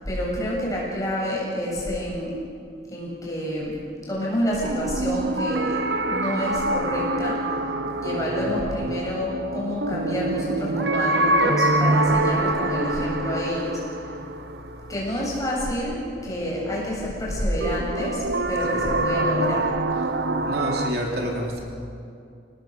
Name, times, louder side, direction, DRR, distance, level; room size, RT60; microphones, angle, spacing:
voice 1, 0.1-2.3 2.9-3.7 4.1-5.8 6.1-7.4 7.9-14.1 14.9-19.7, equal, 20° left, -5 dB, 7.6 m, -28 dB
sound 1, 4.6-15.5 17.6-20.9, right 2 dB, 85° right, 1.1 m, -25 dB
voice 2, 20.0-21.6, equal, 60° right, -1 dB, 3.3 m, -29 dB
26.5 x 19.0 x 6.9 m, 2.4 s
head